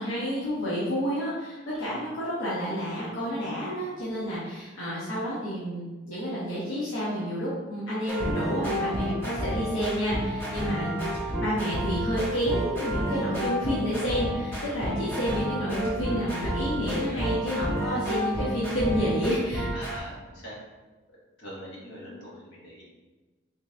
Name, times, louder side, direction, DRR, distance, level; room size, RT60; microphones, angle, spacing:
voice 1, 0.0-19.7, equal, 90° left, -9 dB, 1.0 m, -30 dB
sound 1, 8.1-20.0, equal, 10° left, 0.8 m, -31 dB
voice 2, 14.6-15.0 15.3-15.4 19.7-20.6 21.1-22.8, equal, 70° left, -6 dB, 1.4 m, -44 dB
4.0 x 3.2 x 2.6 m, 1.2 s
head